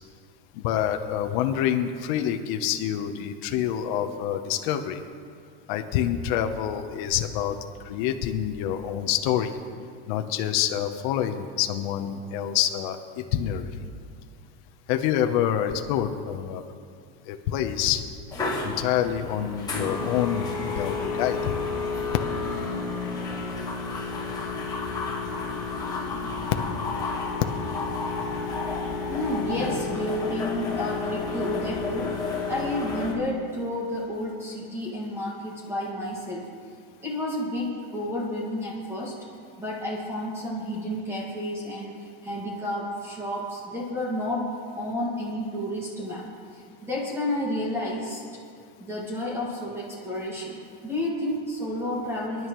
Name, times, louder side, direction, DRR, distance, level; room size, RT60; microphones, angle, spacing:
voice 1, 0.6-5.0 5.7-7.5 7.9-9.5 10.1-13.0 13.3-13.7 14.9-16.6 17.3-18.0 18.6-21.5, left 10 dB, 55° left, 5 dB, 0.9 m, -27 dB
sound 1, 18.3-33.1, left 4 dB, 15° left, 1.9 m, -31 dB
voice 2, 29.1-32.2 32.5-36.5 37.0-39.1 39.6-44.5 44.7-46.3 46.5-48.2 48.8-50.6 50.8-52.5, left 1 dB, 10° right, -5 dB, 1.9 m, -31 dB
26.0 x 11.0 x 3.1 m, 2.2 s
supercardioid pair, 165°, 29 cm